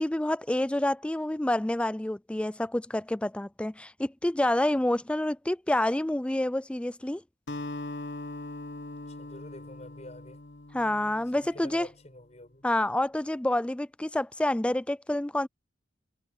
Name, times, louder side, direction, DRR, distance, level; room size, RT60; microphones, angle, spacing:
voice 1, 0.0-7.2 10.7-11.9 12.6-15.5, left 1 dB, 5° left, 0.3 m, -28 dB
Acoustic guitar, 7.5-11.9, left 2 dB, 70° left, 1.2 m, -41 dB
voice 2, 9.1-10.4 11.4-12.6, left 1 dB, 35° left, 6.0 m, -47 dB
head